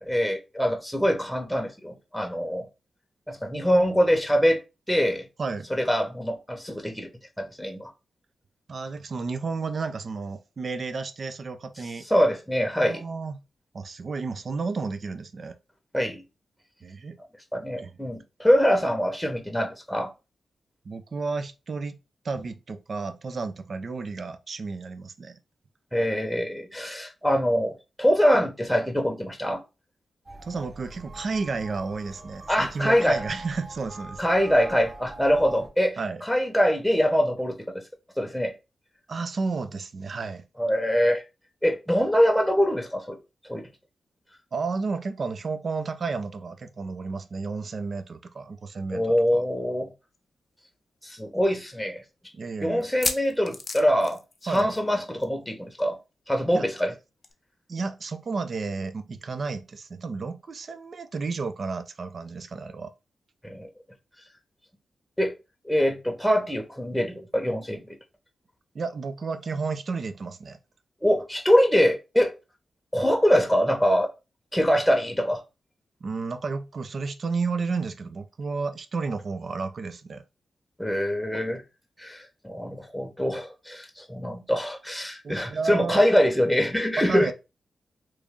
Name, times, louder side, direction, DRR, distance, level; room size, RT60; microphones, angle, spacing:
voice 1, 0.0-2.7 3.3-4.6 4.9-5.3 5.7-7.1 7.4-7.9 12.1-13.0 15.9-16.2 17.5-20.1 25.9-29.6 32.5-33.2 34.2-37.8 38.2-38.5 40.6-41.2 41.6-43.2 43.5-43.7 48.9-49.9 51.0-52.0 52.6-56.0 56.3-56.9 63.4-63.7 65.2-65.3 65.6-68.0 71.0-72.3 72.9-74.1 74.5-75.4 80.8-81.6 82.0-87.3, equal, 5° left, 0.9 m, -24 dB
voice 2, 8.7-12.1 12.7-13.3 13.7-15.6 16.8-17.2 17.8-17.9 20.8-22.0 22.2-25.4 30.4-34.2 36.0-36.2 39.1-40.4 44.5-49.4 52.3-52.9 54.5-54.7 56.5-56.6 57.7-62.9 68.7-70.6 76.0-80.2 85.2-86.1 87.0-87.3, right 4 dB, 60° right, 0.5 m, -32 dB
sound 1, 30.3-35.7, right 2 dB, 40° right, 0.9 m, -43 dB
sound 2, 50.1-50.2 50.5-50.6 51.2-51.3 52.8-54.9 55.2-55.4 55.7-55.8 57.2-57.3, left 3 dB, 50° left, 0.5 m, -33 dB
3.1 x 2.6 x 3.6 m
cardioid pair, 60°, 0 cm